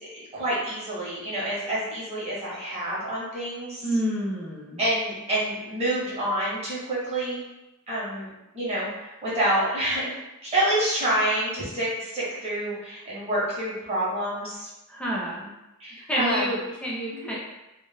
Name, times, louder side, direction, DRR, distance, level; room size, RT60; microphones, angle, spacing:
voice 1, 0.0-3.8 4.8-7.4 7.9-8.3 8.5-10.1 10.5-14.7 15.8-16.5 17.1-17.4, right 1 dB, 30° right, -7 dB, 0.7 m, -28 dB
voice 2, 3.8-4.9 14.9-15.5 16.1-17.4, equal, 5° left, -4 dB, 0.5 m, -28 dB
2.1 x 2.0 x 3.2 m, 0.96 s
head